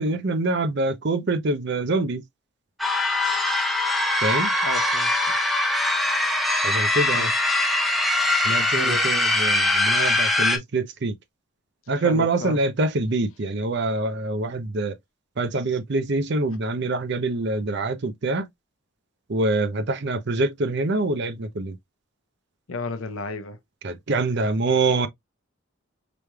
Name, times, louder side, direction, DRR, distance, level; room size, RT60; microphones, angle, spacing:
voice 1, 0.0-2.2 4.2-4.5 6.6-7.3 8.4-11.1 11.9-14.9 15.4-18.5 19.3-21.7 23.8-25.1, right 2 dB, 50° right, 0.6 m, -25 dB
sound 1, 2.8-10.6, left 2 dB, ahead, 0.5 m, -22 dB
voice 2, 4.6-5.3 7.1-7.3 8.2-8.3 8.7-9.1 11.9-12.6 22.7-23.6, left 3 dB, 70° left, 0.7 m, -33 dB
5.0 x 3.1 x 2.3 m
head